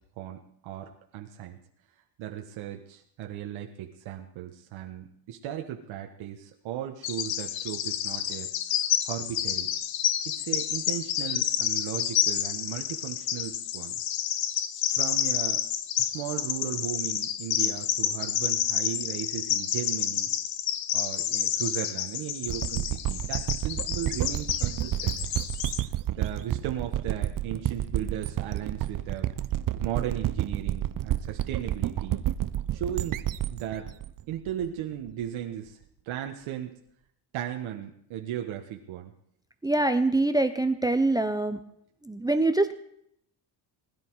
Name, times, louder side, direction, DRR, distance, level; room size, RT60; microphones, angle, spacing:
voice 1, 0.2-1.6 2.2-8.5 9.0-9.7 10.2-14.0 14.9-15.6 16.0-20.3 20.9-25.2 26.1-29.3 29.8-32.2 32.7-33.2 33.5-33.9 34.3-35.8 36.0-36.8 37.3-39.1, right 10 dB, 75° right, 3 dB, 1.5 m, -36 dB
Bird vocalization bird call bird song, 7.0-25.8, left 10 dB, 70° left, 1.1 m, -29 dB
sound 1, 22.5-35.1, right 12 dB, 45° right, 0.7 m, -30 dB
voice 2, 39.6-41.6 42.0-42.7, right 2 dB, 10° right, 10 dB, 0.6 m, -24 dB
20.5 x 11.0 x 4.7 m, 0.70 s
cardioid pair, 140°, 47 cm